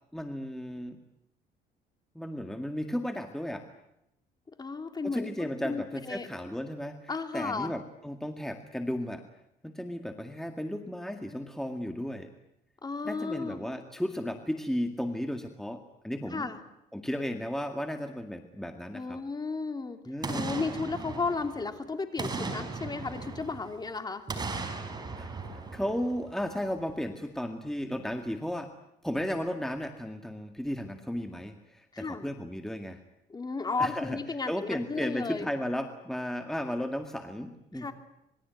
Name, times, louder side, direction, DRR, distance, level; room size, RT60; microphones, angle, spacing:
voice 1, 0.1-1.0 2.2-3.6 5.0-9.2 9.6-12.3 13.0-16.5 16.9-19.2 20.1-20.4 25.2-25.3 25.7-28.7 29.0-33.0 33.8-34.2 34.5-37.9, equal, ahead, 5 dB, 2.0 m, -34 dB
voice 2, 4.6-6.3 7.1-7.7 12.8-13.6 16.3-16.6 18.9-20.0 20.3-24.3 31.9-32.3 33.3-35.5 37.7-37.9, left 4 dB, 25° left, 7 dB, 2.9 m, -34 dB
Boom, 20.2-21.7 22.2-23.8 24.3-26.5 26.9-27.0, right 3 dB, 25° right, 5.0 m, -37 dB
26.5 x 21.5 x 9.3 m, 0.81 s
cardioid pair, 110°, 17 cm